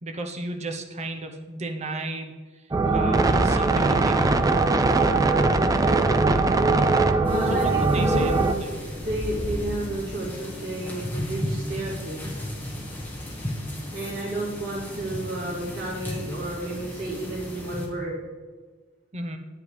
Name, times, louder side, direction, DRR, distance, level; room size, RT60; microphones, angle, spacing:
voice 1, 0.0-2.6 2.9-4.5 7.5-8.8 19.1-19.4, right 2 dB, 35° right, 4 dB, 0.8 m, -34 dB
sound 1, 2.7-8.5, right 3 dB, 20° right, 0.4 m, -21 dB
voice 2, 2.8-3.1 7.2-8.6 9.0-12.3 13.9-18.2, right 1 dB, 75° right, -10 dB, 2.8 m, -31 dB
sound 2, 7.3-17.9, left 1 dB, 10° left, 1.6 m, -34 dB
10.0 x 9.6 x 3.3 m, 1.4 s
head